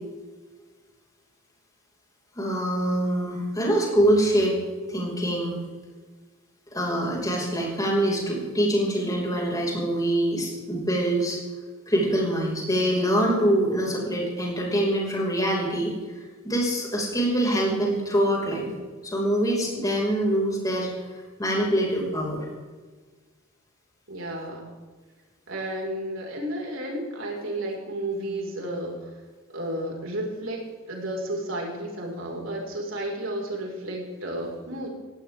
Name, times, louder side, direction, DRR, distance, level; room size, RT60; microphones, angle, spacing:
voice 1, 2.4-4.6 4.9-5.6 6.7-11.4 11.9-16.0 16.4-18.7 19.0-20.9 21.4-22.4, right 1 dB, 20° left, -3 dB, 5.6 m, -24 dB
voice 2, 24.1-24.8 25.5-29.2 29.5-30.6 30.9-34.9, right 1 dB, 70° right, -1 dB, 5.3 m, -32 dB
17.0 x 17.0 x 3.7 m, 1.4 s
head